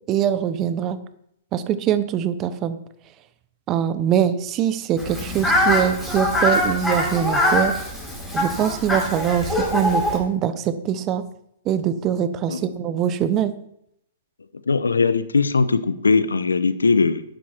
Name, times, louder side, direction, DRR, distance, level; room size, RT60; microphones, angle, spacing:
voice 1, 0.1-1.0 1.5-2.8 3.7-7.8 8.3-11.2 11.6-13.5, right 9 dB, 30° right, 13 dB, 1.0 m, -23 dB
Fowl, 5.0-10.2, left 1 dB, 5° left, 5.7 m, -23 dB
voice 2, 14.7-17.2, left 4 dB, 90° left, 14 dB, 0.8 m, -19 dB
12.0 x 9.2 x 4.5 m, 0.75 s
hypercardioid pair, 120°, 0 cm